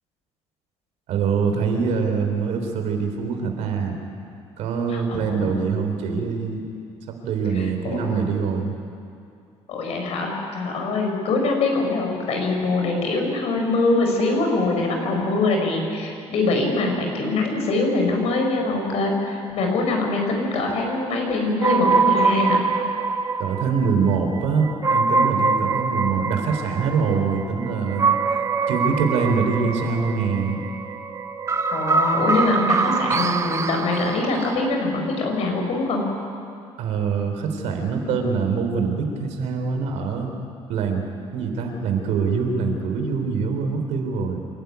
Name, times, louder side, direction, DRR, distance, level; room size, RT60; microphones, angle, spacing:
voice 1, 1.1-4.0 4.6-6.6 7.1-8.8 23.4-28.1 28.7-30.6 36.8-40.3 40.7-41.0 41.3-44.4, right 5 dB, 75° right, 4 dB, 3.4 m, -24 dB
voice 2, 4.9-5.6 7.6-8.0 9.7-22.6 31.7-36.0, left 2 dB, 65° left, 2 dB, 5.2 m, -23 dB
sound 1, 21.6-34.7, right 4 dB, 25° right, 0.9 m, -24 dB
27.0 x 12.0 x 9.4 m, 2.5 s
cardioid pair, 110°, 11 cm